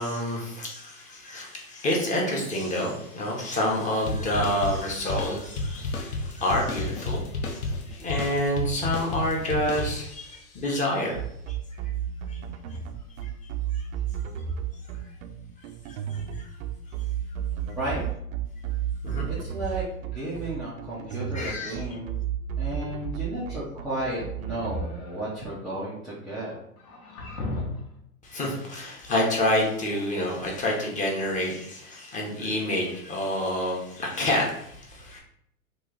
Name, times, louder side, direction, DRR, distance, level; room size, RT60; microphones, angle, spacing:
voice 1, 0.0-11.2 12.3-12.4 13.2-13.3 13.7-13.8 15.9-16.5 19.0-19.3 21.3-21.8 28.2-35.2, left 1 dB, 15° left, -1 dB, 0.8 m, -28 dB
sound 1, 4.1-10.4, left 2 dB, 45° left, 0.8 m, -32 dB
sound 2, 11.1-24.8, right 9 dB, 65° right, 0.5 m, -32 dB
voice 2, 19.3-22.2 22.6-26.6, right 1 dB, ahead, -11 dB, 0.3 m, -33 dB
sound 3, 24.4-25.3 26.8-28.0, left 2 dB, 80° left, 1.1 m, -36 dB
3.0 x 2.4 x 3.7 m, 0.74 s
hypercardioid pair, 115°, 43 cm